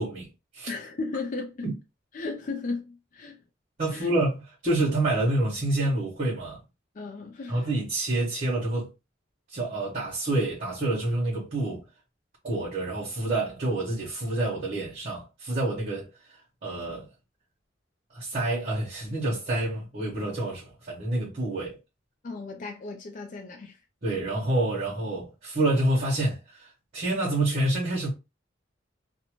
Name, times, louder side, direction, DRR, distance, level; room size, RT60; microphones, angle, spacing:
voice 1, 0.0-0.7 1.6-1.7 3.8-6.6 7.5-8.9 9.5-11.8 12.4-16.1 16.6-17.1 18.1-21.8 24.0-28.1, right 2 dB, 40° right, 0.9 m, -28 dB
voice 2, 0.7-1.7 2.1-3.4 3.9-4.1 6.9-7.7 22.2-23.8, left 3 dB, 40° left, 0.4 m, -35 dB
2.6 x 2.1 x 2.9 m
head